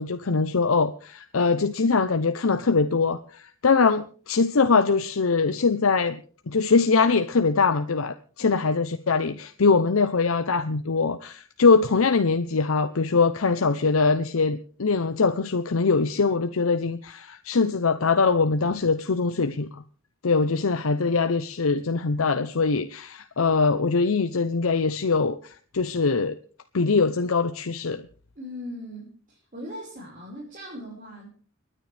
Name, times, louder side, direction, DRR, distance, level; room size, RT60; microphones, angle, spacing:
voice 1, 0.0-6.2 6.5-19.8 20.2-26.4 26.7-28.0, left 4 dB, 85° left, 9 dB, 0.7 m, -22 dB
voice 2, 28.3-31.3, equal, 40° right, -5 dB, 5.0 m, -39 dB
30.0 x 10.0 x 3.4 m, 0.42 s
head